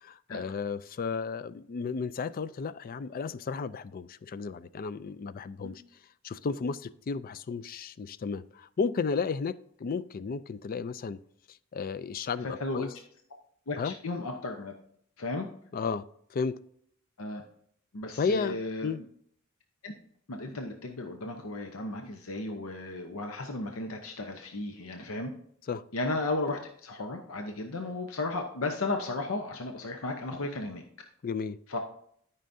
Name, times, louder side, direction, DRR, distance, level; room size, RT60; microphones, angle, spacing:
voice 1, 0.0-5.8 6.2-11.2 11.5-12.9 13.8-14.0 15.7-16.1 16.3-16.6 18.2-19.0 25.7-25.8 31.2-31.6, left 5 dB, 45° left, 0.4 m, -33 dB
voice 2, 12.4-12.9 13.7-14.7 15.2-15.5 17.2-17.4 17.9-18.9 19.8-19.9 20.3-25.3 25.9-30.8 31.7-31.8, left 2 dB, 80° left, 0.8 m, -34 dB
12.5 x 5.6 x 2.6 m
head